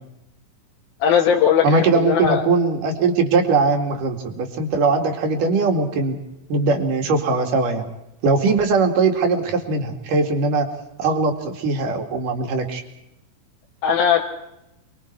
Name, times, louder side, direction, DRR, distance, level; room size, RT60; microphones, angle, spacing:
voice 1, 1.0-2.4 13.8-14.2, left 8 dB, 90° left, -2 dB, 3.6 m, -18 dB
voice 2, 1.6-6.2 6.5-7.9 8.2-10.7 11.0-12.8, right 3 dB, 65° right, 4 dB, 3.9 m, -20 dB
28.0 x 22.0 x 4.6 m, 0.87 s
omnidirectional pair, 4.1 m